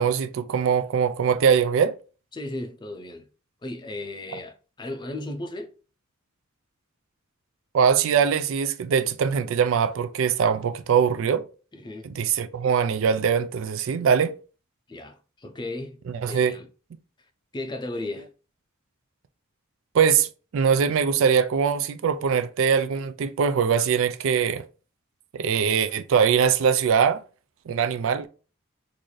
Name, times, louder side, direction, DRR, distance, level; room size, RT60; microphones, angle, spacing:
voice 1, 0.0-1.9 7.7-11.4 12.0-14.3 16.2-16.5 19.9-20.3 20.5-24.6 25.3-27.2 27.7-28.3, right 7 dB, 65° right, 0.4 m, -22 dB
voice 2, 2.3-3.3 3.6-5.7 11.7-12.1 14.9-16.7 17.5-18.3, left 2 dB, 20° left, 0.5 m, -35 dB
3.9 x 2.6 x 3.1 m
head